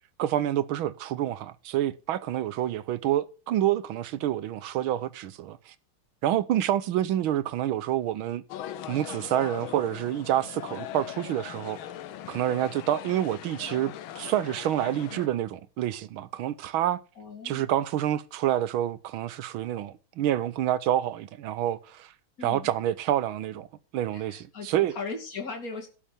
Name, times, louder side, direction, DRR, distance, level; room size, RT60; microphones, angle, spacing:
voice 1, 0.2-5.7 6.2-8.4 8.9-11.8 12.3-17.0 17.4-22.1 22.4-23.7 23.9-24.9, right 12 dB, 80° right, 1.6 m, -28 dB
sound 1, 8.5-15.3, left 11 dB, 75° left, 1.6 m, -40 dB
voice 2, 17.2-17.7 22.4-22.7 24.1-25.9, left 4 dB, 45° left, 3.0 m, -38 dB
12.0 x 6.9 x 7.2 m
omnidirectional pair, 2.3 m